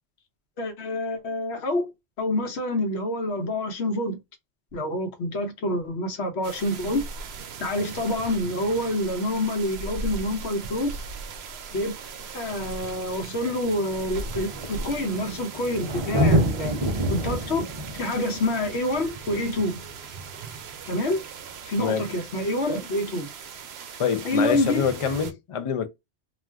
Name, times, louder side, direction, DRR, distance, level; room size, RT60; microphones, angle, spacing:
voice 1, 0.6-1.9 2.2-4.2 4.7-7.0 7.6-11.0 11.7-11.9 12.3-16.7 17.1-17.7 17.9-19.8 20.8-21.2 21.6-23.3 24.2-24.8, left 1 dB, 75° left, 1.1 m, -27 dB
sound 1, 6.4-25.3, right 4 dB, 70° right, 0.8 m, -39 dB
Thunder, 11.8-11.9 12.9-13.0 13.2-20.5 22.2-22.3, right 1 dB, 40° right, 0.4 m, -28 dB
voice 2, 24.0-25.9, left 7 dB, 50° left, 0.4 m, -25 dB
2.4 x 2.3 x 3.3 m
omnidirectional pair, 1.1 m